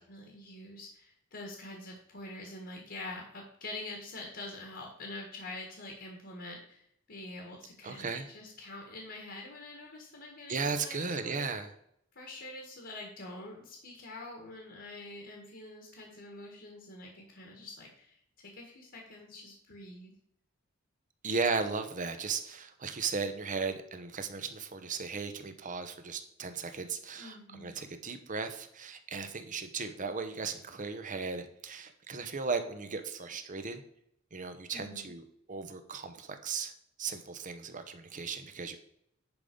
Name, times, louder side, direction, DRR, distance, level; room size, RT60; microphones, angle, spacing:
voice 1, 0.0-11.5 12.1-20.1 27.2-27.9 34.7-35.2, left 2 dB, 55° left, 1 dB, 1.5 m, -46 dB
voice 2, 7.8-8.3 10.5-11.7 21.2-33.8 34.3-36.7 37.0-38.8, right 4 dB, 40° right, 8 dB, 0.8 m, -36 dB
10.5 x 3.8 x 5.2 m, 0.71 s
head